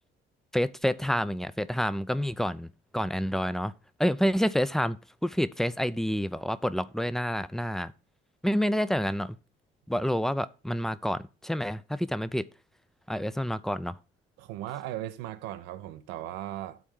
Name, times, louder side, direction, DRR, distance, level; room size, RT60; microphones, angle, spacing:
voice 1, 0.5-2.7 2.9-3.7 4.0-7.9 8.4-9.4 9.9-12.5 13.1-14.0, equal, ahead, 0.7 m, -28 dB
voice 2, 14.4-16.8, right 13 dB, 70° right, 0.8 m, -37 dB
11.5 x 4.5 x 5.5 m
figure-of-eight pair, 45°, 29 cm